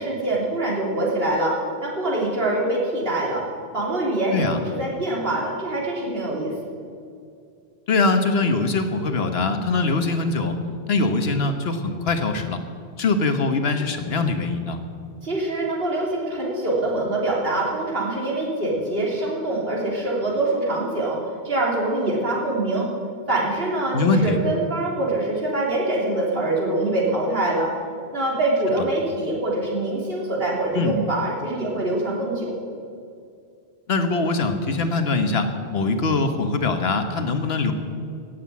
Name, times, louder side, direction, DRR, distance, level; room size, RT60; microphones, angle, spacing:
voice 1, 0.0-1.6 1.8-3.4 3.7-6.5 15.2-21.2 21.4-22.9 23.3-27.7 28.1-32.5, right 2 dB, 65° right, -4 dB, 3.5 m, -24 dB
voice 2, 7.9-10.5 10.9-12.6 13.0-14.8 23.9-24.4 30.7-31.0 33.9-37.7, left 3 dB, 70° left, 7 dB, 1.4 m, -22 dB
17.0 x 7.8 x 8.5 m, 2.4 s
omnidirectional pair, 1.1 m